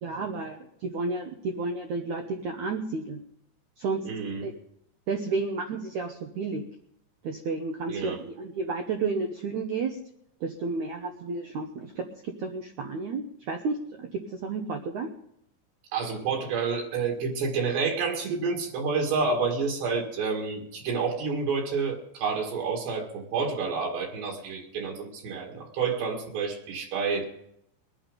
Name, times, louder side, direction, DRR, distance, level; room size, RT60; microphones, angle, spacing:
voice 1, 0.0-3.2 3.8-4.1 4.4-4.5 5.1-6.6 7.2-10.0 10.4-15.1, right 4 dB, 90° right, 4 dB, 1.6 m, -32 dB
voice 2, 4.1-4.5 7.9-8.2 15.9-27.3, right 5 dB, 75° right, 1 dB, 4.1 m, -29 dB
22.5 x 8.8 x 5.2 m, 0.75 s
omnidirectional pair, 5.1 m